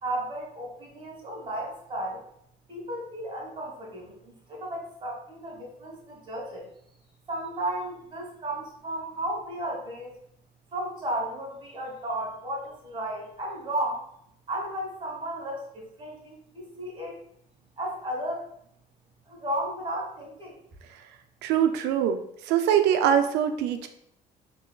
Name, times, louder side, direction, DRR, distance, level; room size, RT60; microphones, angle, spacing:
voice 1, 0.0-2.2 2.7-6.7 7.3-10.1 10.7-14.0 14.5-17.2 17.8-18.5 19.3-20.6, right 1 dB, 30° right, -2 dB, 1.5 m, -34 dB
voice 2, 21.4-22.2 22.5-23.9, right 9 dB, 90° right, 8 dB, 0.4 m, -23 dB
4.3 x 2.9 x 2.3 m, 0.73 s
cardioid pair, 110°, 17 cm